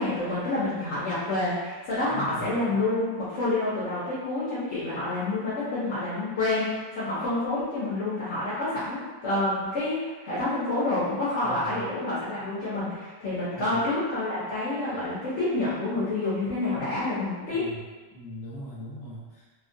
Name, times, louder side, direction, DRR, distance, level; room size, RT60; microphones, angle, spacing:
voice 1, 0.0-17.7, left 2 dB, 60° left, -11 dB, 0.8 m, -28 dB
voice 2, 2.1-2.5 11.4-11.8 13.5-13.8 17.5-17.8 18.1-19.5, equal, 40° left, -9 dB, 1.1 m, -40 dB
2.8 x 2.3 x 2.6 m, 1.3 s
omnidirectional pair, 2.0 m